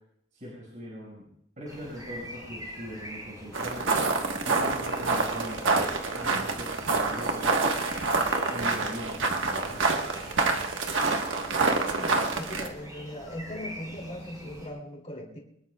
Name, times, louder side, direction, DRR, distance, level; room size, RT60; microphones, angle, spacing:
voice 1, 0.3-1.3 1.6-4.0 4.4-7.7 8.4-9.9, equal, 40° right, -5 dB, 5.7 m, -41 dB
sound 1, 1.7-14.7, equal, 20° right, 7.6 m, -45 dB
sound 2, 3.5-12.7, right 3 dB, 85° right, 1.4 m, -27 dB
voice 2, 11.9-15.4, left 1 dB, 35° left, -1 dB, 3.0 m, -39 dB
23.5 x 20.5 x 2.4 m, 0.76 s
head